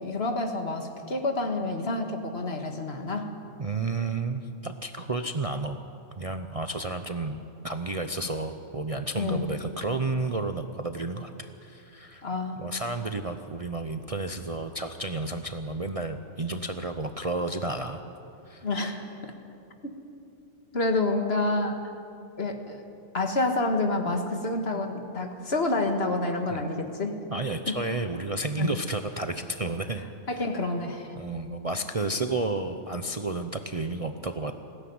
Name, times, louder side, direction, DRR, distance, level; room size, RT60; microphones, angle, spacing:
voice 1, 0.0-3.3 9.2-9.4 12.2-12.7 18.6-19.3 19.8-19.9 20.7-21.9 22.4-22.8 23.1-27.2 28.6-28.7 30.3-31.1, left 2 dB, 50° left, 5 dB, 1.9 m, -28 dB
voice 2, 3.6-5.8 6.2-7.4 7.6-12.2 12.6-18.0 18.5-18.7 26.5-26.6 27.3-30.0 31.1-34.5, right 2 dB, 35° right, 7 dB, 0.7 m, -31 dB
20.5 x 16.5 x 9.5 m, 2.7 s
omnidirectional pair, 1.3 m